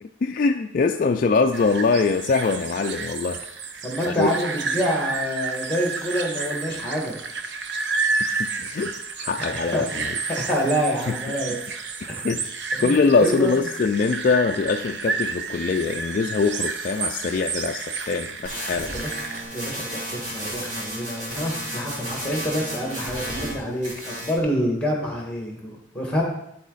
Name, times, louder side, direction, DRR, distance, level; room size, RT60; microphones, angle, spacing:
voice 1, 0.0-3.4 4.1-4.3 8.2-10.1 11.1-11.2 12.0-12.4 12.8-18.9, left 4 dB, 45° left, 4 dB, 0.3 m, -23 dB
sound 1, 1.5-19.4, right 4 dB, 60° right, 0.7 m, -31 dB
voice 2, 3.8-7.2 9.6-10.0 10.3-11.6 12.1-12.3 12.7-13.5 18.9-19.2 19.5-26.2, equal, 5° left, 0 dB, 1.7 m, -27 dB
sound 2, 18.4-23.6 23.8-24.4, equal, 40° right, 3.0 m, -33 dB
12.5 x 4.1 x 3.9 m, 0.78 s
head